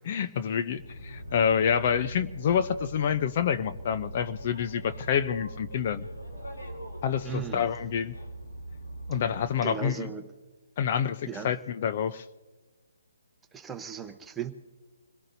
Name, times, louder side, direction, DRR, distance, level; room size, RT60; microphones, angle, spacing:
voice 1, 0.0-6.1 7.0-8.1 9.1-10.1 10.8-12.2, left 8 dB, 40° left, 11 dB, 0.6 m, -28 dB
Boat Water vehicle, 0.7-9.5, right 1 dB, 90° left, 2.9 m, -41 dB
voice 2, 7.2-7.7 9.6-10.3 11.3-11.5 13.5-14.5, right 8 dB, 10° right, 6 dB, 0.9 m, -36 dB
26.5 x 17.5 x 2.7 m, 1.3 s
hypercardioid pair, 150°, 0 cm